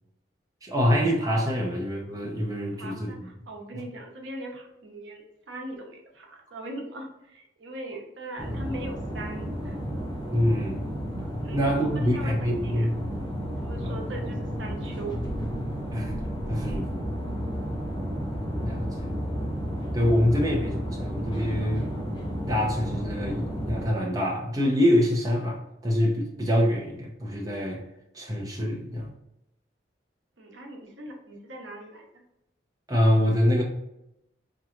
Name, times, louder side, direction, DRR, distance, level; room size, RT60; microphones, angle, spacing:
voice 1, 0.6-3.1 3.7-3.8 10.3-10.9 11.5-13.0 13.8-14.0 15.9-16.2 16.5-17.1 18.6-19.1 19.9-21.9 22.5-27.8 28.1-29.1 32.9-33.6, equal, 20° right, -2 dB, 0.7 m, -25 dB
voice 2, 2.7-9.8 11.4-12.9 13.6-15.2 30.4-32.1, right 1 dB, 75° right, 1 dB, 0.8 m, -40 dB
sound 1, 8.4-23.9, equal, 20° left, 0.9 m, -32 dB
4.6 x 2.9 x 2.4 m, 0.86 s
head